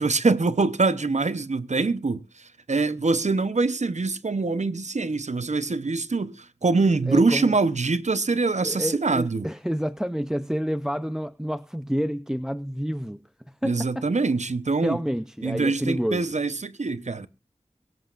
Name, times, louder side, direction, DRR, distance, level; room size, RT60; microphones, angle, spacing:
voice 1, 0.0-9.5 13.6-15.0 15.4-17.3, right 3 dB, 85° right, 0.9 m, -24 dB
voice 2, 7.1-7.5 8.6-13.2 13.6-14.1 14.8-16.3, equal, 5° right, 0.6 m, -29 dB
23.0 x 7.9 x 2.5 m
wide cardioid pair, 55°, 12 cm